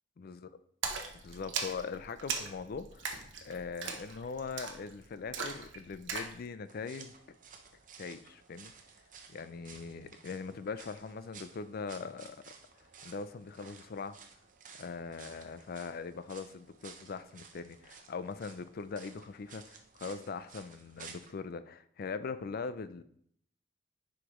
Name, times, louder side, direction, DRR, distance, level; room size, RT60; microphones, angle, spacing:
voice 1, 0.2-0.5 1.1-7.1 8.0-8.7 9.3-12.5 13.0-14.2 14.8-23.0, left 5 dB, 55° left, 13 dB, 0.4 m, -41 dB
Splash splatter, 0.8-6.4, right 5 dB, 80° right, 0.9 m, -39 dB
sound 1, 6.7-21.3, right 6 dB, 45° right, 0.7 m, -55 dB
9.8 x 5.0 x 3.1 m, 0.66 s
head